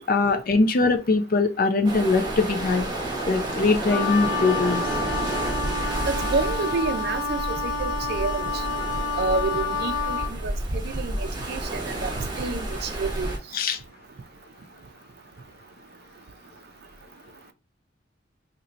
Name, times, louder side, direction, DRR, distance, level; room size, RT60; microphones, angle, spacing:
voice 1, 0.0-2.9 3.3-4.8 13.5-13.8, left 3 dB, 50° left, 0.4 m, -22 dB
sound 1, 1.8-13.4, right 1 dB, 20° right, 1.0 m, -30 dB
Wind instrument woodwind instrument, 3.9-10.3, left 4 dB, 85° left, 0.8 m, -29 dB
voice 2, 6.0-8.7 9.2-13.3, right 4 dB, 55° right, 0.4 m, -29 dB
2.9 x 2.6 x 4.3 m
head